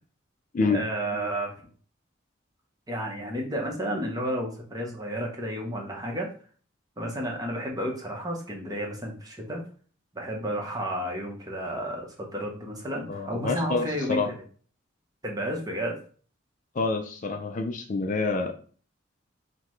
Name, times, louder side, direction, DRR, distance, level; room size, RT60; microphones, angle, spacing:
voice 1, 0.6-1.5 2.9-6.3 7.0-9.6 10.1-14.3 15.2-16.0, equal, 20° right, 0 dB, 0.8 m, -32 dB
voice 2, 13.1-14.3 16.7-18.5, left 3 dB, 40° left, 5 dB, 0.4 m, -27 dB
5.8 x 2.2 x 3.1 m, 0.43 s
head